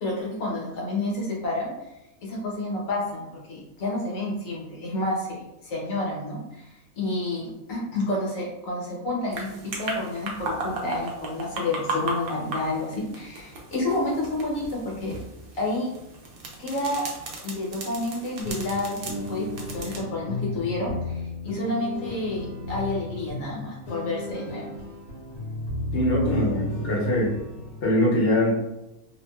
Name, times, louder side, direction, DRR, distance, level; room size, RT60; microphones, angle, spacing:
voice 1, 0.0-1.7 2.2-6.7 7.0-15.1 15.6-15.9 16.6-17.0 17.4-24.7, left 2 dB, 70° left, -3 dB, 1.1 m, -30 dB
sound 1, 9.3-20.0, right 2 dB, 75° right, 0.5 m, -36 dB
sound 2, 18.4-27.9, left 1 dB, 85° left, 1.1 m, -33 dB
voice 2, 25.9-27.3 27.8-28.5, left 1 dB, 50° left, -4 dB, 0.8 m, -22 dB
2.6 x 2.2 x 2.2 m, 0.92 s
omnidirectional pair, 1.5 m